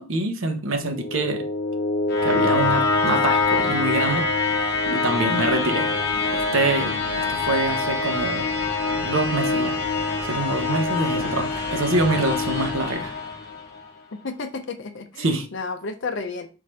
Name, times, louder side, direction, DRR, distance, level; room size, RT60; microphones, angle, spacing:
voice 1, 0.0-1.5 2.2-4.6 4.8-5.9 6.3-8.5 9.0-9.7 10.2-13.1 15.2-15.5, right 2 dB, 85° right, 5 dB, 0.8 m, -25 dB
sound 1, 0.8-13.8, left 3 dB, 50° left, 1.1 m, -24 dB
voice 2, 14.2-15.3 15.5-16.5, left 4 dB, 70° left, 7 dB, 0.5 m, -31 dB
4.4 x 3.8 x 3.1 m, 0.33 s
head